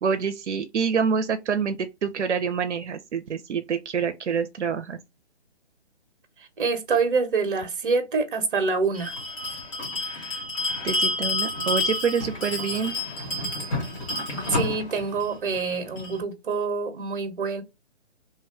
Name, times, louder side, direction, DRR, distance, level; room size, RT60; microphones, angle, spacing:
voice 1, 0.0-5.0 10.8-12.9, right 6 dB, 85° right, 0.6 m, -26 dB
voice 2, 6.4-9.2 14.5-17.6, right 4 dB, 50° right, 0.9 m, -26 dB
Bell, 8.9-16.2, left 2 dB, 30° left, 1.2 m, -29 dB
2.9 x 2.2 x 3.5 m
hypercardioid pair, 155°, 34 cm